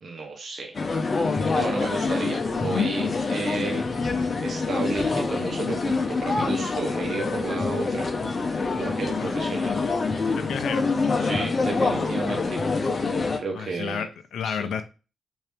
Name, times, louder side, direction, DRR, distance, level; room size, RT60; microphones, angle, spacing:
voice 1, 0.0-0.8 1.3-3.8 4.4-8.1 8.8-9.7 11.2-12.6 13.0-14.0 14.4-14.7, right 3 dB, 60° right, 2 dB, 0.9 m, -32 dB
sound 1, 0.7-13.4, left 4 dB, 45° left, 0.7 m, -26 dB
voice 2, 10.4-10.9 13.5-14.8, left 7 dB, 80° left, 9 dB, 0.5 m, -31 dB
2.8 x 2.7 x 3.4 m, 0.31 s
cardioid pair, 60°, 0 cm